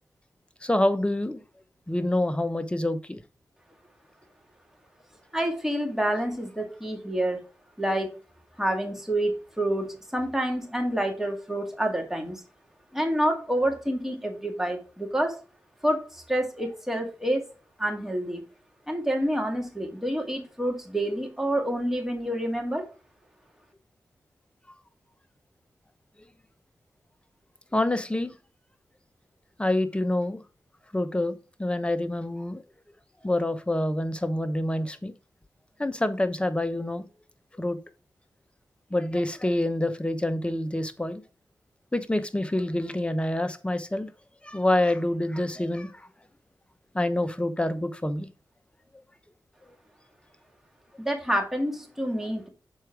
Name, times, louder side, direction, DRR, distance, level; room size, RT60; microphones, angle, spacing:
voice 1, 0.6-1.4 1.9-3.2 27.7-28.3 29.6-30.4 30.9-32.6 33.2-35.1 35.8-37.1 37.5-37.8 38.9-41.2 41.9-44.1 44.4-46.1 46.9-48.3, left 1 dB, 15° left, 0.9 m, -27 dB
voice 2, 5.3-7.4 7.8-8.1 8.6-12.4 12.9-15.4 15.8-17.4 17.8-18.4 18.9-22.8 51.0-52.5, right 1 dB, 5° right, 2.3 m, -28 dB
6.5 x 4.5 x 4.8 m
cardioid pair, 50°, 7 cm